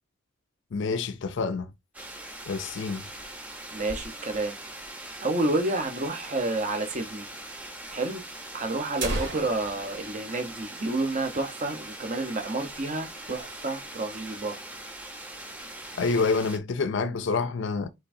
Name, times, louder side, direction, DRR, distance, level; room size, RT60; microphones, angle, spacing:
voice 1, 0.7-1.7 2.5-3.0 15.9-17.9, left 4 dB, 60° left, 0.5 m, -27 dB
sound 1, 1.9-16.6, right 1 dB, 5° right, 0.9 m, -41 dB
sound 2, 3.2-4.6 5.0-5.1 5.3-5.4 6.0-6.1 7.0-7.2 7.5-7.6 8.3-8.4 8.8-11.4 11.7-11.8 12.2-12.5 12.9-13.5, right 2 dB, 60° right, 2.1 m, -37 dB
voice 2, 3.7-4.6 5.2-7.3 7.9-8.2 8.5-14.6, right 2 dB, 35° right, 0.9 m, -30 dB
5.4 x 3.5 x 2.7 m
head